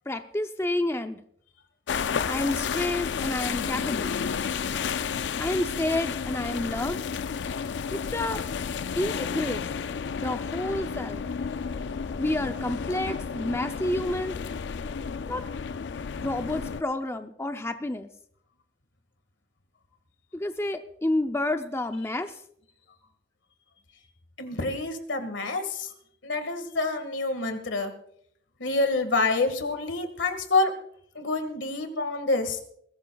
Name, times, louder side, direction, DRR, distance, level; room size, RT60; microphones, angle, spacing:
voice 1, 0.1-1.2 2.3-4.2 5.4-7.0 7.9-8.4 9.0-9.7 10.2-11.2 12.2-14.4 15.3-15.4 16.2-18.1 20.3-22.3, left 1 dB, 15° left, 8 dB, 0.5 m, -29 dB
sound 1, 1.9-16.8, left 6 dB, 70° left, 0.4 m, -31 dB
voice 2, 24.4-25.9 26.2-27.9 28.6-30.7 31.2-32.6, left 3 dB, 85° left, 7 dB, 1.8 m, -27 dB
21.0 x 16.0 x 2.3 m, 0.67 s
head